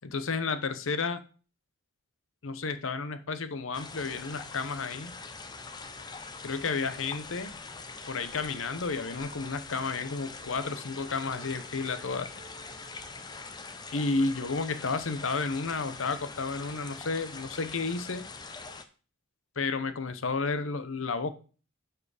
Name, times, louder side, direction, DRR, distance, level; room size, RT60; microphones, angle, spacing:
voice 1, 0.0-1.2 2.4-5.1 6.4-7.6 8.1-12.3 13.9-18.2 19.6-21.3, left 4 dB, 80° left, 10 dB, 0.9 m, -32 dB
sound 1, 3.7-18.8, left 4 dB, 20° left, 0.7 m, -43 dB
Piano, 11.4-13.9, right 1 dB, 45° left, 2.2 m, -55 dB
11.0 x 4.8 x 4.9 m, 0.38 s
head